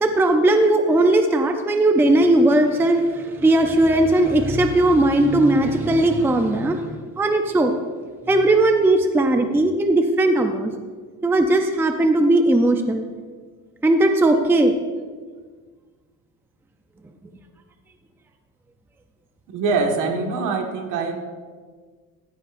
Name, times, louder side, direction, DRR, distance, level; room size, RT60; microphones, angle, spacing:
voice 1, 0.0-7.8 8.3-10.7 11.2-13.0 13.8-14.7, right 1 dB, 5° right, 5 dB, 0.5 m, -18 dB
voice 2, 19.5-21.1, right 4 dB, 60° right, 3 dB, 1.6 m, -23 dB
15.5 x 11.0 x 2.6 m, 1.5 s
cardioid pair, 140°, 34 cm